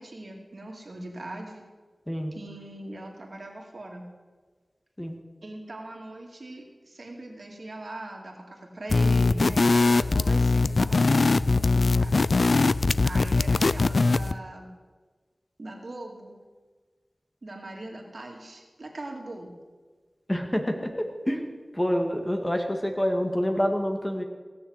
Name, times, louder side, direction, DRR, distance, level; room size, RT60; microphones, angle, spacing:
voice 1, 0.0-1.6 2.3-4.0 5.4-12.3 13.0-14.7 15.6-16.3 17.4-19.6, right 1 dB, 65° right, 0 dB, 2.5 m, -40 dB
sound 1, 8.9-14.4, left 3 dB, 75° left, 0.3 m, -21 dB
voice 2, 20.3-21.4 21.7-24.2, equal, 15° left, 3 dB, 1.9 m, -27 dB
17.5 x 6.9 x 8.0 m, 1.4 s
wide cardioid pair, 50°, 0 cm